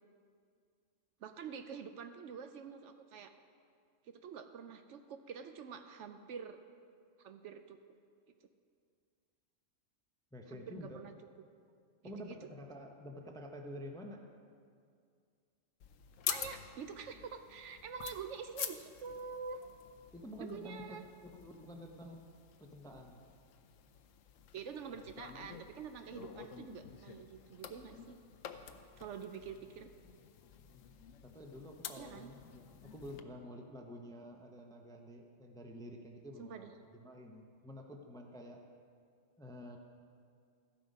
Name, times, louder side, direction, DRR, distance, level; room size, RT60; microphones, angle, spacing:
voice 1, 1.2-3.3 4.0-6.6 7.2-7.8 10.5-11.1 12.0-12.4 16.3-19.6 20.4-21.0 24.5-28.2 29.0-29.9 31.9-32.3 36.4-36.7, right 6 dB, 70° right, 8 dB, 0.9 m, -46 dB
voice 2, 10.3-11.0 12.0-14.2 20.1-22.3 22.6-23.2 31.2-38.6 39.4-39.8, left 1 dB, 5° left, 2 dB, 0.5 m, -49 dB
sound 1, 15.8-33.2, left 9 dB, 75° left, 1.0 m, -48 dB
13.5 x 7.7 x 5.3 m, 2.2 s
omnidirectional pair, 1.4 m